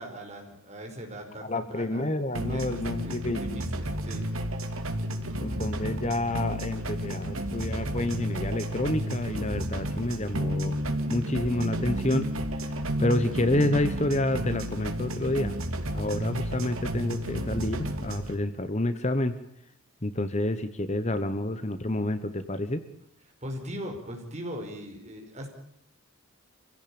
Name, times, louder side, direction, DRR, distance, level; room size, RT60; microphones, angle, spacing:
voice 1, 0.0-2.1 2.5-4.2 23.4-25.5, equal, 30° right, 2 dB, 5.1 m, -40 dB
voice 2, 1.4-3.6 5.4-10.8 11.1-12.3 12.6-15.5 15.9-19.3 20.0-22.8, left 1 dB, 30° left, 11 dB, 1.1 m, -29 dB
sound 1, 2.4-18.3, equal, 75° right, 2.7 m, -32 dB
26.0 x 16.5 x 8.8 m, 0.72 s
head